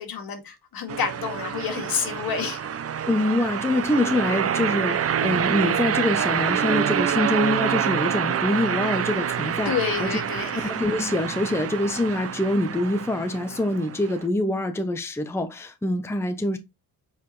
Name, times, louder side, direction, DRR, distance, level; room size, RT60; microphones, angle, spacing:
voice 1, 0.0-2.6 9.7-10.7, left 6 dB, 60° left, 2.1 m, -29 dB
sound 1, 0.9-14.2, right 8 dB, 35° right, 0.5 m, -27 dB
voice 2, 3.1-9.7 10.0-10.2 10.5-16.6, left 1 dB, 5° left, 0.8 m, -25 dB
7.9 x 4.9 x 3.1 m
cardioid pair, 120°, 40 cm